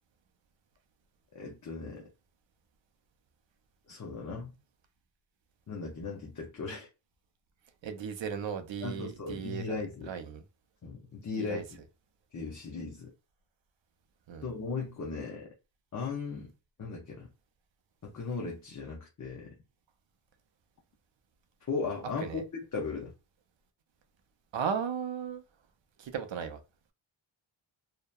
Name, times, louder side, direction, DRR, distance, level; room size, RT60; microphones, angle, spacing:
voice 1, 1.3-2.1 3.9-4.5 5.7-6.9 8.8-10.1 10.8-11.6 12.3-13.1 14.4-15.5 15.9-16.5 16.8-17.3 18.0-19.5 21.7-22.4 22.7-23.1, left 4 dB, 40° left, 0.5 m, -37 dB
voice 2, 7.8-10.4 11.4-11.6 14.3-14.5 22.2-22.4 24.5-25.4 26.0-26.6, right 7 dB, 65° right, 0.5 m, -36 dB
2.7 x 2.1 x 2.2 m
wide cardioid pair, 135°, 49 cm